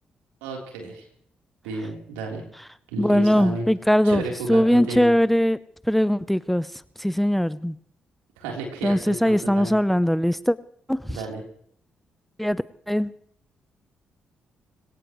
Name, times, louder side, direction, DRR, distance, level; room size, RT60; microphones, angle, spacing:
voice 1, 0.4-1.1 1.6-2.4 2.9-3.7 4.0-5.1 8.4-9.8 11.1-11.4, right 3 dB, 85° right, 1 dB, 3.7 m, -32 dB
voice 2, 3.0-4.2 4.5-5.6 5.9-6.7 7.0-7.8 8.8-10.6 10.9-11.2 12.4-13.1, equal, 5° left, 18 dB, 0.7 m, -20 dB
24.0 x 17.5 x 3.1 m, 0.64 s
hypercardioid pair, 45°, 4 cm